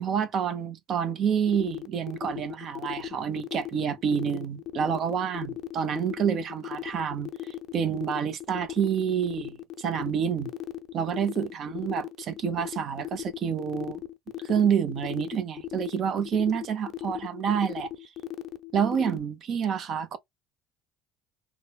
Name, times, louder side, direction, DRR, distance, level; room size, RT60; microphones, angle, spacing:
voice 1, 0.0-10.5 10.9-14.0 14.4-17.9 18.7-20.2, right 8 dB, 55° right, 0.7 m, -28 dB
sound 1, 1.5-19.2, left 14 dB, 55° left, 0.5 m, -37 dB
3.7 x 2.1 x 2.2 m
supercardioid pair, 85°, 0 cm